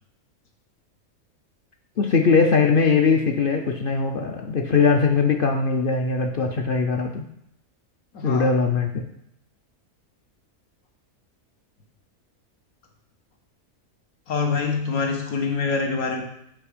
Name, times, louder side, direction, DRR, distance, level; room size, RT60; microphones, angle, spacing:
voice 1, 2.0-7.2 8.2-9.0, left 5 dB, 55° left, 3 dB, 0.6 m, -20 dB
voice 2, 8.1-8.5 14.3-16.2, left 4 dB, 80° left, 2 dB, 1.6 m, -25 dB
6.0 x 4.5 x 4.9 m, 0.74 s
omnidirectional pair, 1.5 m